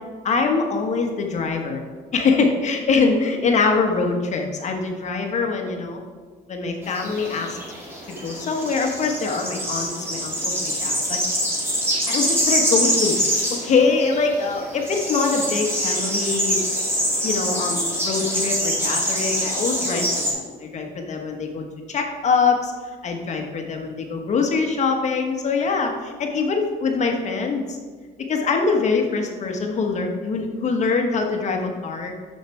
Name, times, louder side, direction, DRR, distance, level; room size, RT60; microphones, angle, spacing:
voice 1, 0.2-1.8 2.1-6.0 6.5-7.6 8.2-11.2 12.1-13.2 13.5-16.6 17.2-22.7 23.0-27.8 28.3-32.1, left 4 dB, 45° left, 3 dB, 1.2 m, -23 dB
sound 1, 6.8-20.3, equal, 15° right, 2.4 m, -25 dB
6.6 x 6.5 x 4.5 m, 1.5 s
cardioid pair, 110°, 17 cm